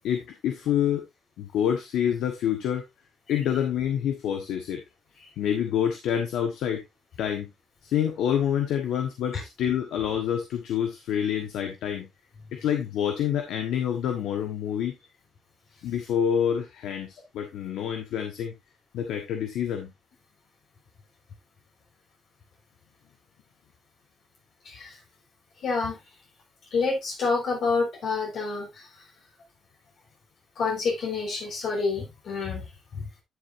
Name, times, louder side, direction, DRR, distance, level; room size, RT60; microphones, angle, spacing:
voice 1, 0.0-1.0 1.4-2.8 3.3-4.8 5.4-6.8 7.2-7.5 7.8-12.1 12.5-15.0 15.8-18.5 18.9-19.9, left 9 dB, 85° left, 5 dB, 1.4 m, -27 dB
voice 2, 24.6-25.0 25.6-26.0 26.7-28.9 30.6-32.6 32.9-33.0, left 4 dB, 65° left, 1 dB, 4.8 m, -28 dB
11.0 x 7.2 x 2.7 m, 0.20 s
cardioid pair, 90°, 0 cm